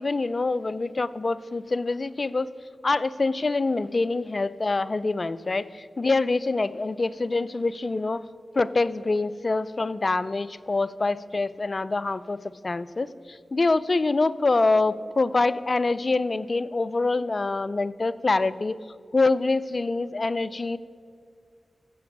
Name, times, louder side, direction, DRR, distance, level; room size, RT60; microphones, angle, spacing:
voice 1, 0.0-2.5 2.8-8.2 8.5-18.8 19.1-20.8, left 3 dB, 50° left, 16 dB, 0.4 m, -25 dB
15.5 x 6.8 x 5.3 m, 2.3 s
cardioid pair, 40°, 0 cm